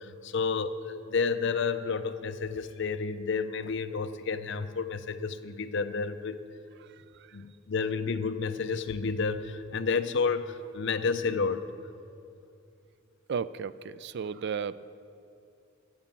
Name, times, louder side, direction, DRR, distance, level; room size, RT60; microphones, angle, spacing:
voice 1, 0.0-6.4 7.3-11.7, left 5 dB, 60° left, 11 dB, 0.6 m, -30 dB
voice 2, 6.8-7.4 13.3-14.8, right 6 dB, 55° right, 16 dB, 0.4 m, -35 dB
13.0 x 6.9 x 8.7 m, 2.6 s
head